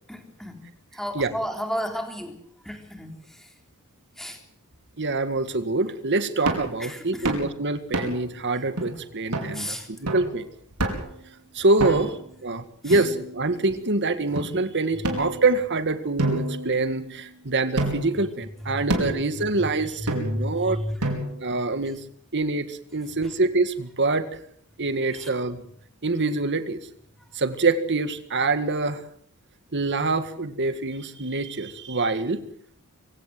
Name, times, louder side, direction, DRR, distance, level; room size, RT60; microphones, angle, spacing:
voice 1, 0.1-0.6 0.9-2.4 2.6-3.5 4.2-4.4 6.8-7.3 8.4-8.5 9.5-9.9 11.8-12.1 12.8-13.0 18.7-21.0 23.2-23.3 25.1-25.3, equal, ahead, 4 dB, 3.6 m, -33 dB
voice 2, 5.0-10.5 11.5-20.8 21.4-22.0 22.3-24.3 24.8-25.6 26.0-26.8 27.3-29.0 29.7-32.4, right 3 dB, 55° right, 11 dB, 1.9 m, -25 dB
sound 1, 6.5-6.7 7.2-7.5 7.9-8.3 8.8-8.9 9.3-9.5 10.1-10.3 10.8-11.2 11.8-12.2 12.9-13.6 14.4-14.5 15.0-15.7 16.2-17.2 17.8-18.2 18.9-19.3 20.1-20.5 21.0-21.5, right 1 dB, 85° right, 5.0 m, -28 dB
25.0 x 16.5 x 7.7 m, 0.62 s
head